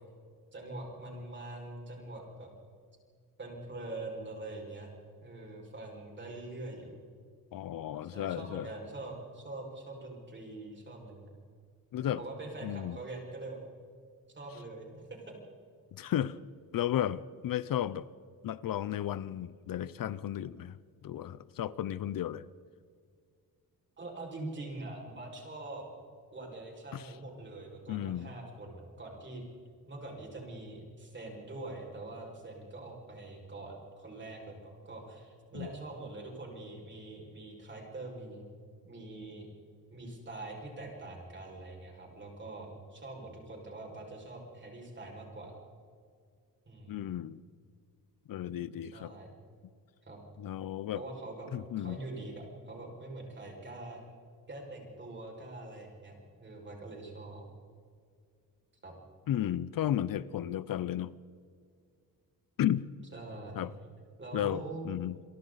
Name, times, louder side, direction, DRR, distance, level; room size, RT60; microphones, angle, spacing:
voice 1, 0.5-2.5 3.4-4.9 5.2-6.9 8.0-11.3 12.0-13.6 14.3-15.4 16.0-16.1 24.0-25.9 26.3-29.4 29.9-38.5 38.8-39.5 39.9-45.6 46.7-47.1 48.9-49.3 50.0-50.2 50.9-54.0 54.5-57.4 58.8-58.9 63.1-63.6 64.2-64.8, right 2 dB, 30° right, 5.7 m, -44 dB
voice 2, 7.5-8.7 11.9-12.2 12.6-13.0 15.9-16.4 16.7-18.1 18.4-20.8 21.0-22.4 26.9-27.1 27.9-28.3 35.5-35.7 46.9-47.4 48.3-49.1 50.4-51.0 51.5-52.0 59.3-61.1 62.6-62.8 63.6-63.7 64.3-65.2, left 11 dB, 65° left, 0.6 m, -33 dB
28.0 x 23.5 x 4.0 m
wide cardioid pair, 160°, 36 cm